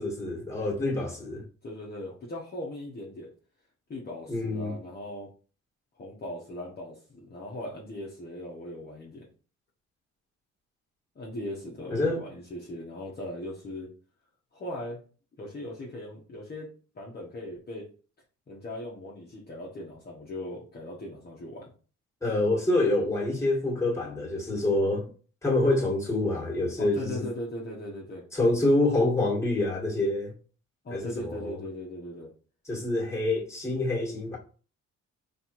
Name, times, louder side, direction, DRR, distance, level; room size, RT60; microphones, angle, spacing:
voice 1, 0.0-1.4 4.3-4.8 11.9-12.2 22.2-25.1 25.4-27.3 28.3-30.3 30.9-31.6 32.7-34.4, left 2 dB, 10° left, 1.7 m, -26 dB
voice 2, 1.6-3.3 3.9-5.3 6.0-9.3 11.1-13.9 14.5-15.0 15.4-16.7 16.9-17.9 18.5-21.7 26.8-28.2 30.8-32.3, left 1 dB, 35° left, 1.1 m, -39 dB
4.1 x 3.1 x 3.0 m
cardioid pair, 90°, 30 cm